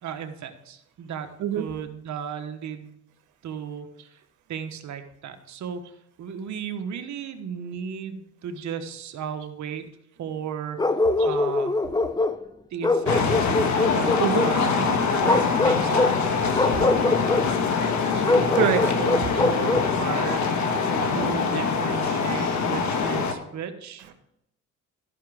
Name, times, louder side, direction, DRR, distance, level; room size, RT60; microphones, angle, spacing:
voice 1, 0.0-1.3 1.5-3.0 3.4-4.2 4.5-5.8 6.2-9.8 10.2-10.8 11.2-11.7 12.7-13.5 13.8-16.2 18.1-20.5 21.1-24.0, right 7 dB, 70° right, 7 dB, 1.3 m, -35 dB
Bark, 10.8-12.4 12.8-14.6 15.2-16.2 16.5-17.5 18.2-19.9, left 2 dB, 15° left, 0.7 m, -23 dB
sound 1, 13.1-23.3, left 5 dB, 70° left, 1.4 m, -24 dB
voice 2, 16.2-17.1 18.6-18.8, right 9 dB, 90° right, 7 dB, 1.3 m, -26 dB
13.0 x 5.9 x 5.0 m, 0.80 s
cardioid pair, 90°, 30 cm